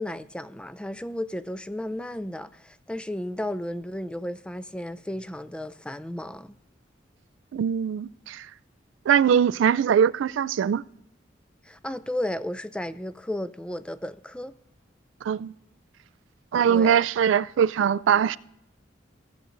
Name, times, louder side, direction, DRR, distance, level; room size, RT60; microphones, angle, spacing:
voice 1, 0.0-6.6 11.6-14.5 16.6-17.0, left 1 dB, 5° left, 0.3 m, -33 dB
voice 2, 7.5-8.4 9.1-10.8 15.3-15.5 16.5-18.4, right 8 dB, 75° right, 0.3 m, -21 dB
16.0 x 7.6 x 2.6 m
head